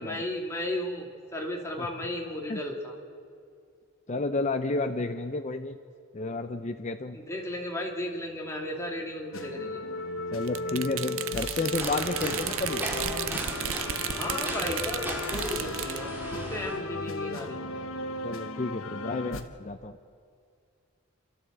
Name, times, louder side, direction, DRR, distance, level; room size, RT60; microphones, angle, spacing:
voice 1, 0.0-2.9 7.1-9.8 14.1-15.1 15.3-17.7, left 1 dB, 15° left, -1 dB, 2.4 m, -34 dB
voice 2, 4.1-5.8 6.1-7.2 10.3-12.8 16.0-16.2 18.2-20.0, left 3 dB, 30° left, 6 dB, 0.6 m, -31 dB
sound 1, 9.3-19.4, left 3 dB, 65° left, 1.2 m, -36 dB
sound 2, 10.5-16.0, right 12 dB, 65° right, 0.5 m, -34 dB
sound 3, 11.7-16.8, right 1 dB, 10° right, 2.1 m, -36 dB
29.0 x 12.5 x 7.9 m, 2.3 s
head